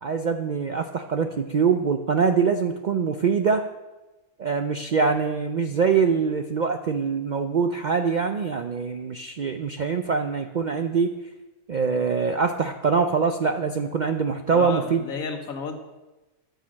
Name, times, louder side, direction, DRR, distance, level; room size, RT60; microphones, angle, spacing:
voice 1, 0.0-3.7 4.4-11.1 11.7-15.0, right 5 dB, 60° right, 6 dB, 0.4 m, -24 dB
voice 2, 14.5-15.8, left 4 dB, 85° left, 5 dB, 1.7 m, -32 dB
12.5 x 6.6 x 6.3 m, 1.1 s
omnidirectional pair, 1.4 m